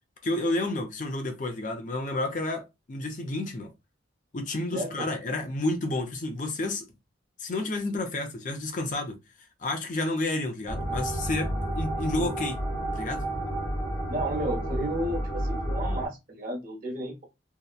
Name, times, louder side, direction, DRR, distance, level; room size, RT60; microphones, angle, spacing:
voice 1, 0.2-3.7 4.3-6.9 7.4-9.2 9.6-12.6 13.0-13.3, left 2 dB, 40° left, 0.4 m, -30 dB
sound 1, 10.7-16.1, right 1 dB, 25° left, 0.9 m, -31 dB
voice 2, 14.1-17.2, right 1 dB, 45° right, 0.8 m, -33 dB
2.8 x 2.1 x 2.2 m
head